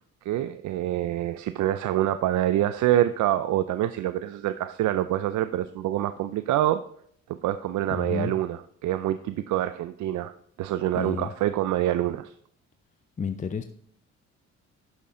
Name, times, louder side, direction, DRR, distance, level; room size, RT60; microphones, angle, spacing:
voice 1, 0.2-6.8 7.3-12.3, right 13 dB, 75° right, 12 dB, 0.5 m, -26 dB
voice 2, 7.7-8.3 10.9-11.3 13.2-13.6, left 6 dB, 25° left, 9 dB, 0.5 m, -31 dB
11.0 x 6.3 x 3.8 m, 0.64 s
cardioid pair, 90°, 30 cm